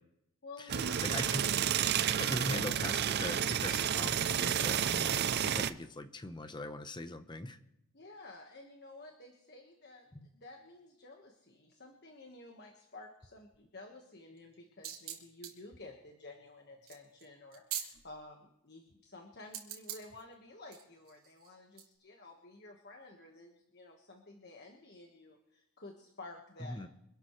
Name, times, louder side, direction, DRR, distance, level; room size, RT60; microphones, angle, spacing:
voice 1, 0.4-1.1 2.1-2.6 7.9-26.8, left 2 dB, 50° left, 3 dB, 1.5 m, -52 dB
sound 1, 0.7-5.7, right 9 dB, 50° right, 0.5 m, -31 dB
voice 2, 1.0-1.5 2.2-7.6 10.1-10.3 26.7-26.9, left 2 dB, 20° left, 9 dB, 0.8 m, -41 dB
sound 2, 14.4-18.2 19.5-20.2 20.7-21.8, right 10 dB, 70° right, 3.3 m, -44 dB
26.0 x 12.5 x 3.2 m, 0.84 s
head